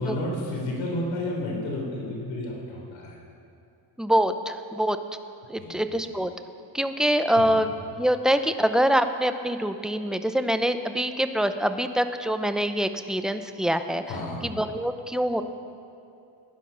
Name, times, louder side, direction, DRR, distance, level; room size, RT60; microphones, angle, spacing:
voice 1, 0.0-3.2 5.6-5.8 7.4-7.6 14.1-14.4, left 1 dB, 80° left, -1 dB, 4.0 m, -31 dB
voice 2, 4.0-5.0 5.5-6.3 6.7-7.7 8.0-14.0 14.4-15.4, equal, ahead, 8 dB, 0.6 m, -24 dB
16.5 x 11.0 x 5.7 m, 2.6 s
cardioid pair, 110°, 45 cm